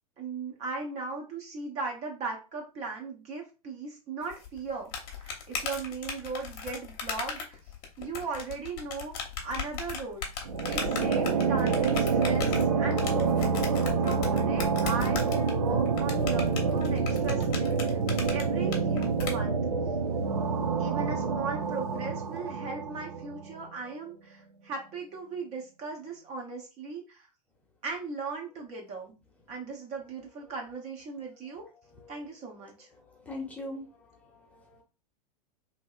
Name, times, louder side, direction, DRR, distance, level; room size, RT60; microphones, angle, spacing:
voice 1, 0.2-4.9 5.2-7.6 8.0-9.2 9.4-10.3 10.7-13.6 14.0-18.0 18.3-19.6 20.8-27.3 27.8-29.1 29.5-31.6 32.1-32.9, right 4 dB, 35° right, 1 dB, 0.8 m, -38 dB
sound 1, 4.3-19.3, left 6 dB, 45° left, 0.8 m, -37 dB
sound 2, 10.4-23.6, right 5 dB, 75° right, 0.6 m, -27 dB
voice 2, 31.6-32.2 33.0-34.8, left 2 dB, 5° left, -2 dB, 0.9 m, -43 dB
2.7 x 2.7 x 2.4 m, 0.31 s
figure-of-eight pair, 95°, 20 cm